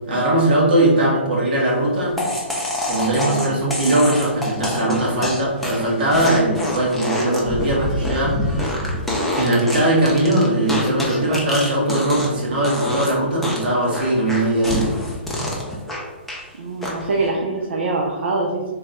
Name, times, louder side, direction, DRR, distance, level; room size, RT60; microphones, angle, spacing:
voice 1, 0.1-2.1 2.9-8.8 9.4-15.0, right 1 dB, 50° right, -4 dB, 1.5 m, -20 dB
sound 1, 2.2-12.4 12.6-13.1 13.4-16.4 16.8-17.3, left 1 dB, ahead, 0.5 m, -26 dB
voice 2, 16.6-18.7, right 3 dB, 70° right, -1 dB, 0.5 m, -24 dB
3.4 x 2.3 x 4.0 m, 1.3 s
hypercardioid pair, 155°, 6 cm